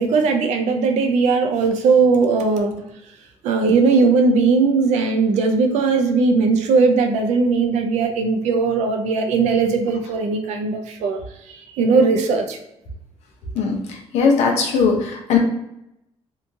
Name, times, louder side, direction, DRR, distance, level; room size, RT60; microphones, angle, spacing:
voice 1, 0.0-2.8 3.4-11.2 11.8-12.6, right 4 dB, 85° right, 5 dB, 0.5 m, -18 dB
voice 2, 14.1-15.4, left 5 dB, 75° left, 1 dB, 0.7 m, -18 dB
2.8 x 2.4 x 2.6 m, 0.82 s
cardioid pair, 115°, 11 cm